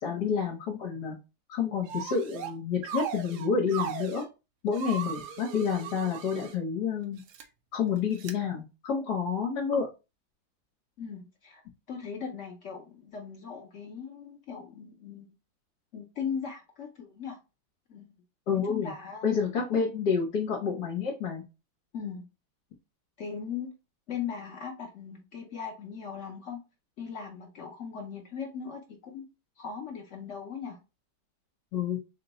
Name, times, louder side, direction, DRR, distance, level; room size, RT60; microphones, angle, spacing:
voice 1, 0.0-1.2 1.5-4.2 4.6-7.2 7.7-9.9 18.5-18.9 19.2-21.4 31.7-32.0, left 6 dB, 60° left, -1 dB, 1.4 m, -29 dB
sound 1, 1.9-2.5 2.8-4.2 4.7-6.6 7.2-7.4 8.2-8.3, right 8 dB, 70° right, 1.0 m, -37 dB
voice 2, 11.0-11.6 11.9-15.3 15.9-17.4 17.9-18.1 18.7-19.4 21.9-22.3 23.2-23.7 24.1-26.6 27.0-29.3 29.6-30.8, left 7 dB, 85° left, 1 dB, 0.6 m, -39 dB
3.9 x 2.2 x 3.9 m, 0.28 s
omnidirectional pair, 2.2 m